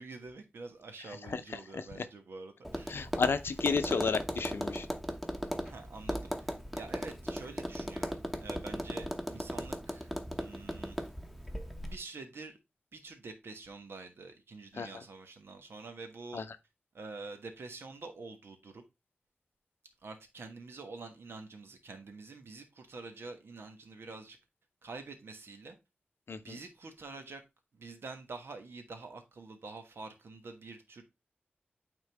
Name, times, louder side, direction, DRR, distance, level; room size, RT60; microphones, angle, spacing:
voice 1, 0.0-3.0 3.8-4.1 5.6-11.1 11.9-12.6 12.9-16.4 16.9-18.8 20.0-24.4 24.8-25.7 26.3-27.4 27.7-31.0, right 3 dB, 80° right, 1.3 m, -47 dB
voice 2, 1.3-1.8 2.9-4.9 14.8-15.0 16.3-16.4 26.3-26.6, left 5 dB, 75° left, 0.7 m, -32 dB
Tap, 2.6-12.0, equal, 5° right, 1.0 m, -37 dB
9.0 x 3.7 x 3.4 m
wide cardioid pair, 105°, 4 cm